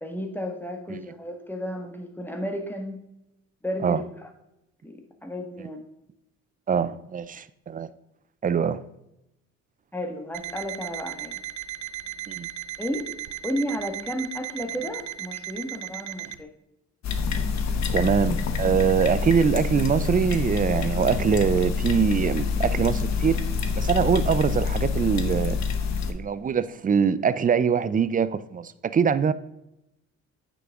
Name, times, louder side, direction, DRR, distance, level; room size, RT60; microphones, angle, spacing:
voice 1, 0.0-3.0 3.6-4.3 4.8-5.8 9.9-11.4 12.8-13.1 13.4-16.5, equal, 5° left, 4 dB, 1.5 m, -33 dB
voice 2, 6.7-7.9 8.4-8.8 12.3-12.5 17.9-23.4 23.7-25.6 26.1-29.3, right 7 dB, 30° right, 15 dB, 0.5 m, -23 dB
Alarm, 10.3-16.4, right 12 dB, 80° right, 0.5 m, -36 dB
sound 1, 17.0-26.1, left 5 dB, 65° left, 1.0 m, -26 dB
9.1 x 6.1 x 3.7 m, 0.86 s
cardioid pair, 90°, 30 cm